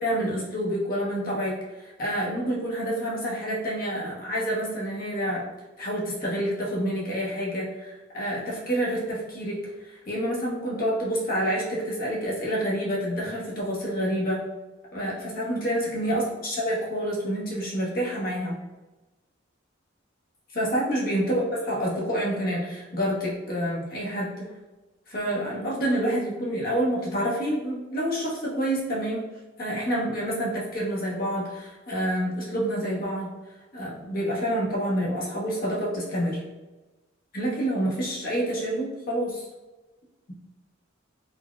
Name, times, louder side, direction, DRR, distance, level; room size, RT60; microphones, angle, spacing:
voice 1, 0.0-5.4 5.8-9.6 9.9-14.4 14.9-18.6 20.5-24.5 25.1-29.2 29.6-33.3 33.7-36.4 37.3-39.5, equal, 45° left, -5 dB, 0.8 m, -28 dB
3.9 x 2.1 x 2.3 m, 1.1 s
head